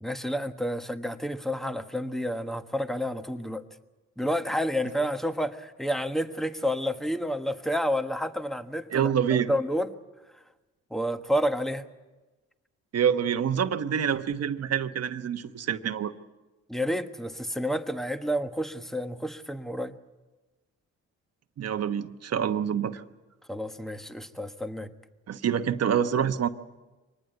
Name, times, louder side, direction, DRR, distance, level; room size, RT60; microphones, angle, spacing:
voice 1, 0.0-3.7 4.2-9.1 9.5-9.9 10.9-11.8 16.7-19.9 23.5-24.9, equal, ahead, 8 dB, 1.3 m, -30 dB
voice 2, 8.9-9.5 12.9-16.1 21.6-23.0 25.3-26.5, right 8 dB, 55° right, 9 dB, 1.2 m, -26 dB
24.0 x 19.5 x 8.0 m, 1.2 s
cardioid pair, 90°, 30 cm